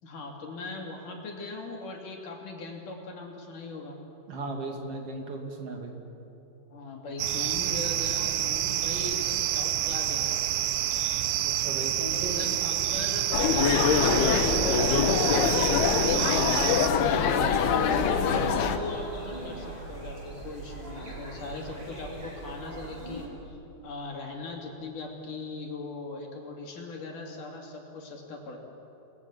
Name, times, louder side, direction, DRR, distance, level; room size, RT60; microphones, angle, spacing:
voice 1, 0.0-4.0 6.7-10.4 12.3-16.4 17.6-23.6 23.8-28.6, left 3 dB, 55° left, 0 dB, 4.2 m, -39 dB
voice 2, 4.3-5.9 11.4-12.6 17.2-17.6, right 2 dB, 40° right, 2 dB, 3.4 m, -36 dB
sound 1, 7.2-16.9, right 12 dB, 75° right, 1.9 m, -28 dB
sound 2, 13.3-18.8, left 6 dB, 85° left, 3.3 m, -24 dB
sound 3, 17.3-23.3, right 2 dB, 10° right, 4.0 m, -41 dB
29.0 x 20.5 x 7.5 m, 2.9 s
omnidirectional pair, 4.4 m